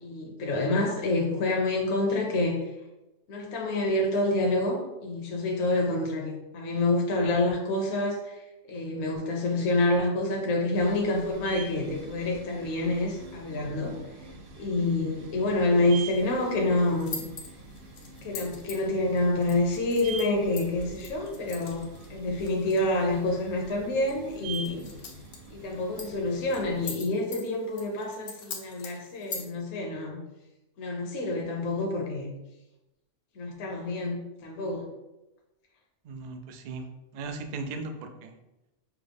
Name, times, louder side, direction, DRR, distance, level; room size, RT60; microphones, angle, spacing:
voice 1, 0.0-2.7 3.3-14.0 14.6-17.3 18.2-24.9 25.5-30.2 30.8-32.3 33.4-34.9, left 2 dB, 65° left, 0 dB, 0.9 m, -27 dB
sound 1, 10.7-26.9, right 3 dB, 65° right, 0.8 m, -45 dB
sound 2, 16.1-29.5, left 5 dB, 90° left, 1.0 m, -45 dB
voice 2, 36.0-36.9 37.1-38.3, right 3 dB, 80° right, 5 dB, 0.3 m, -37 dB
5.8 x 2.0 x 3.3 m, 0.98 s
omnidirectional pair, 1.3 m